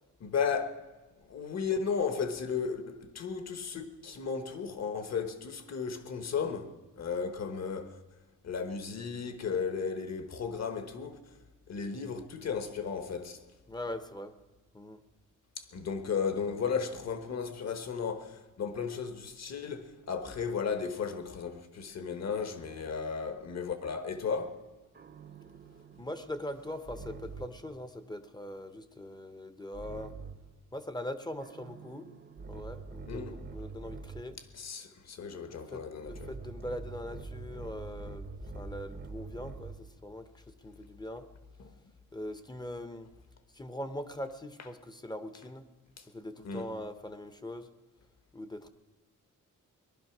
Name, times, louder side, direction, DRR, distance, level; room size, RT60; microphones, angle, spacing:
voice 1, 0.2-0.9 1.2-8.0 8.4-11.2 11.7-13.4 15.6-24.6 33.1-33.4 34.5-36.3 41.6-41.7 46.4-46.7, left 6 dB, 55° left, 1.3 m, -35 dB
voice 2, 13.7-14.3 14.7-15.0 26.0-30.1 30.7-32.1 32.5-34.4 35.5-38.3 38.5-40.3 40.6-41.3 42.1-43.1 43.5-45.7 46.1-47.7 48.3-48.7, left 1 dB, 15° left, 0.7 m, -41 dB
sound 1, 25.0-27.7 29.7-30.6 31.4-34.4 36.1-39.9, right 4 dB, 35° right, 0.7 m, -45 dB
18.5 x 12.0 x 6.0 m
wide cardioid pair, 175°, 32 cm